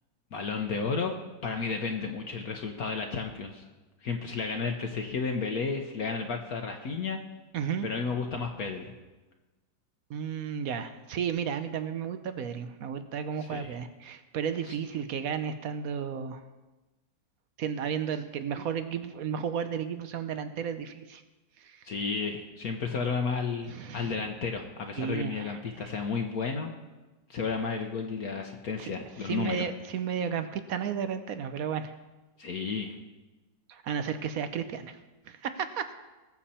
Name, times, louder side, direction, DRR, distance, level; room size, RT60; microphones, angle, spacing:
voice 1, 0.3-1.1 1.4-3.7 4.0-7.2 7.8-8.9 13.5-13.8 14.7-14.8 21.8-26.7 27.3-29.7 32.4-32.9, left 5 dB, 60° left, 3 dB, 1.3 m, -32 dB
voice 2, 7.5-7.9 10.1-16.4 17.6-21.2 21.6-21.8 23.7-24.2 25.0-25.9 28.8-28.9 29.2-31.9 33.7-35.0 35.3-35.9, right 7 dB, 60° right, 10 dB, 1.0 m, -33 dB
20.0 x 7.2 x 4.3 m, 1.1 s
omnidirectional pair, 2.0 m